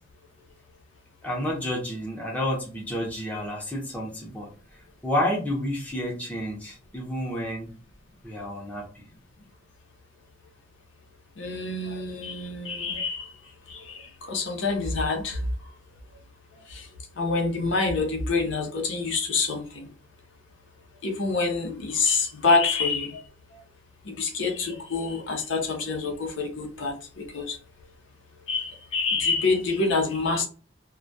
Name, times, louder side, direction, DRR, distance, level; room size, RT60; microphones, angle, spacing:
voice 1, 1.2-4.5 5.0-7.7 8.2-8.8, left 1 dB, 5° left, -3 dB, 0.6 m, -30 dB
voice 2, 11.4-13.3 13.7-14.0 14.3-15.4 16.7-16.8 17.2-19.6 21.0-23.1 24.1-27.6 28.5-30.5, left 4 dB, 70° left, 2 dB, 0.6 m, -26 dB
2.2 x 2.1 x 2.6 m, 0.37 s
head